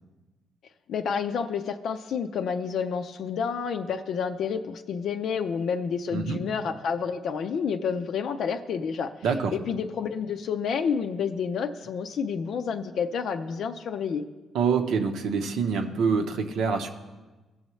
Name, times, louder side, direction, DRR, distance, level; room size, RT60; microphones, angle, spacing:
voice 1, 0.9-9.1 9.5-14.2, left 6 dB, 70° left, 6 dB, 0.5 m, -29 dB
voice 2, 6.1-6.4 9.2-9.5 14.5-16.9, right 5 dB, 80° right, 5 dB, 0.9 m, -26 dB
16.5 x 6.4 x 3.1 m, 1.2 s
cardioid pair, 90°, 0 cm